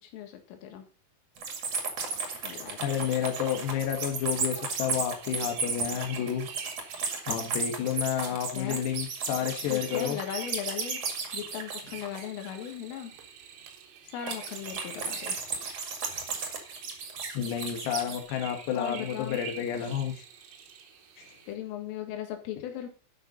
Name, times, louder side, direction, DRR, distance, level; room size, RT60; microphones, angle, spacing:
voice 1, 0.0-0.9 2.4-2.8 8.5-8.9 9.7-11.0 11.3-13.1 14.0-15.4 18.7-19.4 21.5-22.9, left 10 dB, 90° left, 5 dB, 4.3 m, -38 dB
sound 1, 1.4-12.7 14.3-18.2, right 4 dB, 45° right, 2.3 m, -34 dB
voice 2, 2.8-6.5 7.3-10.2 17.3-20.2 21.2-21.3, left 9 dB, 65° left, 4 dB, 3.4 m, -30 dB
sound 2, 3.1-21.6, right 7 dB, 80° right, 3.9 m, -48 dB
12.0 x 6.2 x 5.3 m, 0.36 s
omnidirectional pair, 5.6 m